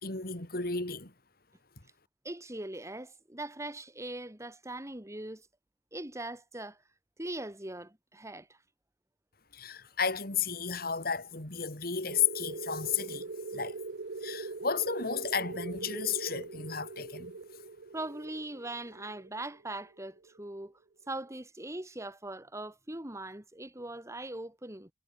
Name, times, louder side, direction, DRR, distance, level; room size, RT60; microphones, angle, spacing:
voice 1, 0.0-1.1 9.5-13.8 14.2-17.3, left 6 dB, 55° left, 3.9 m, -33 dB
voice 2, 2.2-5.5 5.9-6.8 7.2-8.5 17.9-20.8 21.1-24.9, right 1 dB, 15° right, 2.6 m, -41 dB
sound 1, 12.1-20.4, right 3 dB, 85° right, 0.8 m, -41 dB
head